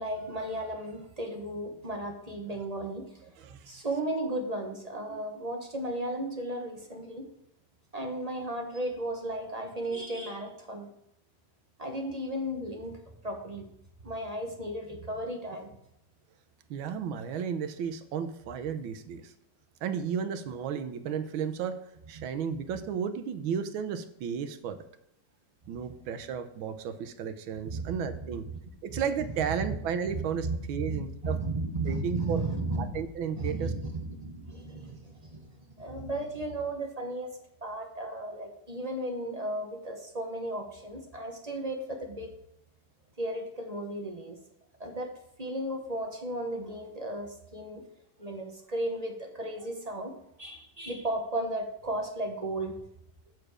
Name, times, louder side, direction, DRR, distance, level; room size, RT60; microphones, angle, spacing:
voice 1, 0.0-3.1 3.6-7.3 7.9-10.9 11.8-13.0 13.2-13.7 14.0-15.8 22.1-22.2 27.6-28.2 28.9-29.0 29.6-29.7 30.1-37.3 37.6-42.3 43.2-44.4 44.8-45.1 45.4-47.8 48.2-52.7, right 1 dB, 25° right, 2 dB, 0.9 m, -35 dB
voice 2, 3.2-4.0 5.1-5.2 16.7-19.3 19.8-21.8 22.1-24.8 25.7-28.5 28.8-32.4 32.8-33.7, right 7 dB, 80° right, 10 dB, 1.6 m, -34 dB
7.7 x 6.9 x 4.9 m, 0.80 s
omnidirectional pair, 2.2 m